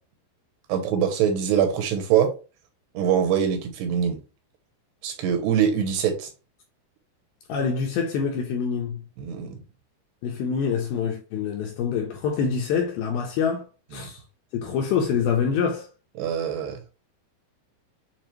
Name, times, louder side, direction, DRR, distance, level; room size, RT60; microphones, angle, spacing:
voice 1, 0.7-2.3 2.9-4.2 5.0-6.3 9.2-9.6 16.2-16.8, right 8 dB, 80° right, 2.7 m, -23 dB
voice 2, 7.5-9.0 10.2-14.2 14.5-15.9, left 6 dB, 85° left, 2.2 m, -26 dB
7.1 x 2.4 x 3.0 m
omnidirectional pair, 4.9 m